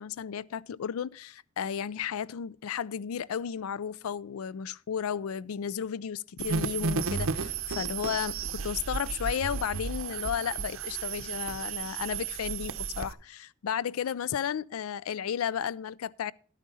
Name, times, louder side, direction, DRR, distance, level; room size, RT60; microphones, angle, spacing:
voice 1, 0.0-16.3, left 8 dB, 75° left, 0.4 m, -33 dB
sound 1, 6.4-13.1, right 5 dB, 65° right, 0.6 m, -33 dB
11.5 x 9.2 x 4.1 m
head